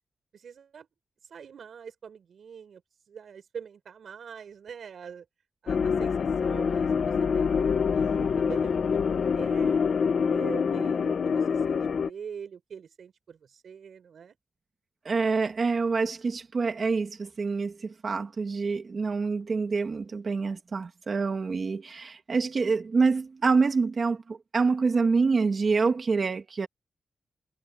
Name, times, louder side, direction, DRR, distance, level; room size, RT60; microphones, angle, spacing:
voice 1, 0.3-0.9 1.2-2.8 3.1-5.3 5.6-9.8 10.3-14.4, right 7 dB, 60° right, 5.4 m, -44 dB
sound 1, 5.7-12.1, left 6 dB, 50° left, 1.1 m, -25 dB
voice 2, 15.0-26.7, right 4 dB, 35° right, 2.1 m, -26 dB
wide cardioid pair, 180°, 0 cm